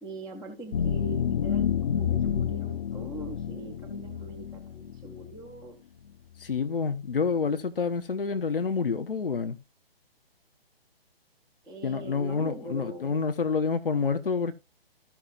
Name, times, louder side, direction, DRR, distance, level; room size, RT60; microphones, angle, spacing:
voice 1, 0.0-5.8 11.6-13.2, right 2 dB, ahead, 0.5 m, -42 dB
sound 1, 0.7-5.5, left 8 dB, 35° left, 0.8 m, -29 dB
voice 2, 6.4-9.6 11.8-14.5, left 5 dB, 65° left, 1.1 m, -28 dB
15.0 x 5.8 x 2.5 m
figure-of-eight pair, 135°, 31 cm